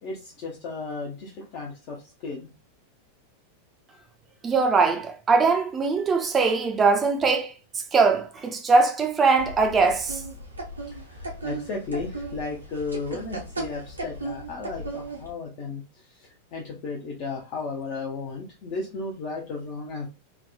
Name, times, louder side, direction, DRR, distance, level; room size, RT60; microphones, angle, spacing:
voice 1, 0.0-2.0 2.2-2.5 11.1-15.8 16.1-20.1, left 3 dB, 40° left, 0.7 m, -34 dB
voice 2, 4.4-10.2, right 4 dB, 20° right, 0.5 m, -21 dB
sound 1, 9.4-15.3, right 2 dB, 80° right, 0.8 m, -36 dB
3.5 x 2.1 x 2.3 m
figure-of-eight pair, 90°, 0 cm